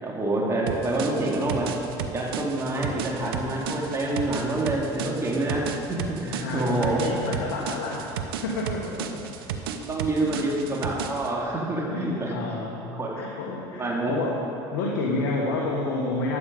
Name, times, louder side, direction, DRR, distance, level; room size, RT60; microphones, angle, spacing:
voice 1, 0.0-1.7 2.1-7.0 9.7-12.6 12.9-13.2 13.7-14.2, right 2 dB, 25° right, -3 dB, 2.4 m, -27 dB
sound 1, 0.7-11.3, right 8 dB, 90° right, 0.7 m, -34 dB
voice 2, 6.4-9.4 10.2-10.4 11.9-14.4 14.7-16.4, left 2 dB, 80° left, -2 dB, 1.4 m, -30 dB
11.0 x 8.2 x 5.2 m, 2.7 s
supercardioid pair, 95°, 12 cm